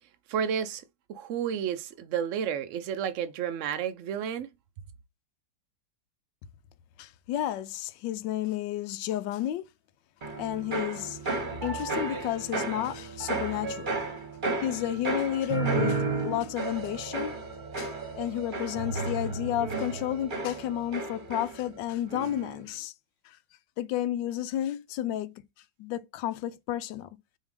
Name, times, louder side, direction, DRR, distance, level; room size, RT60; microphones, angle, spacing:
voice 1, 0.3-0.8 1.1-4.5, right 8 dB, 80° right, 0.6 m, -31 dB
voice 2, 7.0-9.7 10.3-11.4 11.6-14.0 14.6-17.4 17.8-22.9 23.2-23.4 23.8-25.3 25.8-27.1, left 12 dB, 80° left, 1.3 m, -32 dB
sound 1, 10.2-21.8 22.1-22.6, right 3 dB, 30° right, 1.1 m, -33 dB
6.3 x 2.9 x 5.2 m
omnidirectional pair, 1.9 m